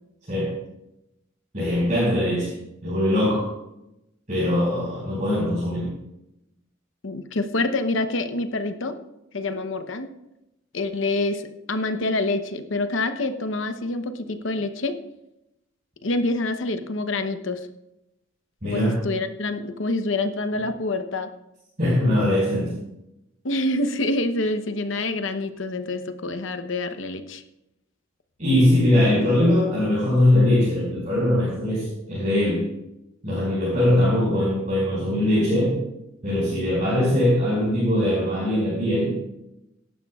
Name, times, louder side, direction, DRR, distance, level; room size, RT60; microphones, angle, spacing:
voice 1, 0.3-0.6 1.5-2.5 2.8-3.5 4.3-5.9 18.6-19.0 21.8-22.7 28.4-32.7 33.2-35.8 36.2-39.1, left 1 dB, 40° right, -9 dB, 5.1 m, -21 dB
voice 2, 7.0-9.0 9.3-10.1 10.7-11.4 11.7-15.0 16.0-17.7 18.6-21.3 23.4-27.4, left 2 dB, 65° left, 8 dB, 0.9 m, -26 dB
17.0 x 11.0 x 2.4 m, 0.88 s
head